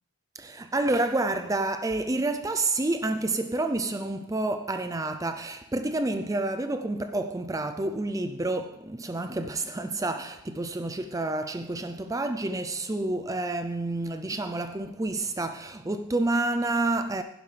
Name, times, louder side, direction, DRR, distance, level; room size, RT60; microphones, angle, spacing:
voice 1, 0.3-17.2, right 2 dB, 15° right, 0.5 m, -29 dB
16.5 x 11.5 x 3.4 m
head